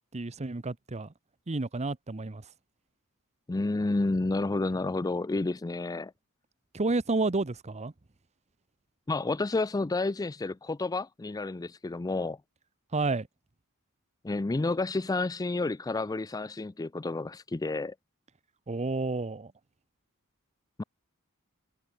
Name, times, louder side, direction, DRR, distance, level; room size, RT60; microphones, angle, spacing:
voice 1, 0.1-1.1 1.5-2.5 6.7-7.9 12.9-13.3 18.7-19.5, right 3 dB, 30° right, 0.8 m, -30 dB
voice 2, 3.5-6.1 9.1-12.4 14.2-17.9 20.8-20.9, left 2 dB, 15° left, 0.4 m, -30 dB
head